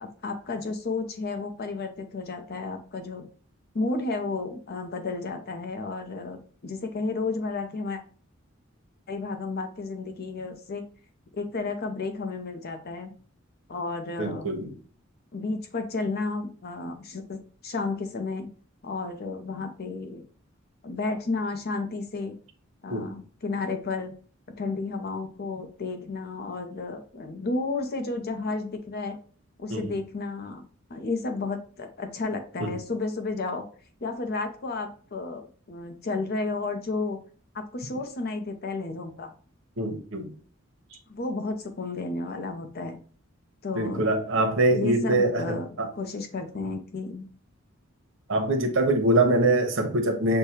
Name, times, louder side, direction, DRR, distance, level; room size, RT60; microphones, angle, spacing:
voice 1, 0.0-3.2 3.7-8.0 9.1-10.9 11.3-13.1 13.7-14.5 15.3-18.5 18.8-20.2 20.8-22.4 22.8-24.1 24.6-29.2 29.6-30.6 30.9-33.6 34.0-37.2 37.5-39.3 41.1-43.0 43.6-45.7 45.9-47.2, left 3 dB, 50° left, 0.6 m, -32 dB
voice 2, 14.2-14.7 22.9-23.1 29.7-29.9 32.6-32.7 39.8-40.3 43.7-45.9 48.3-50.4, right 2 dB, 65° right, 0.9 m, -24 dB
6.4 x 2.2 x 2.8 m
head